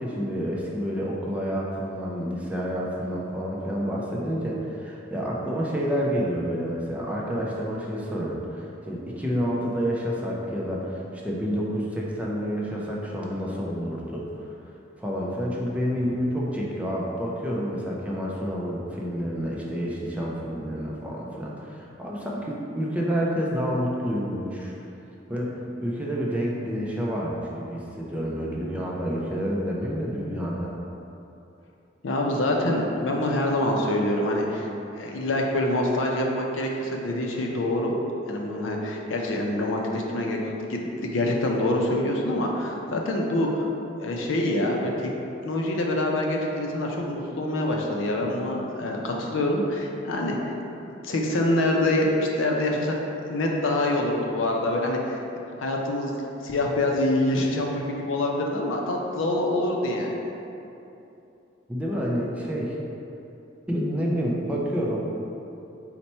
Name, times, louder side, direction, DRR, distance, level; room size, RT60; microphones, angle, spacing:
voice 1, 0.0-14.5 15.0-24.7 25.3-25.5 25.8-30.7 61.7-62.8 63.7-65.0, equal, 5° right, -4 dB, 0.4 m, -29 dB
voice 2, 32.0-34.7 35.0-37.9 38.3-43.7 44.0-45.1 45.4-50.5 50.8-53.0 53.2-55.2 55.6-56.1 56.4-60.1, left 1 dB, 80° left, 0 dB, 0.5 m, -25 dB
4.2 x 2.2 x 4.2 m, 2.8 s
head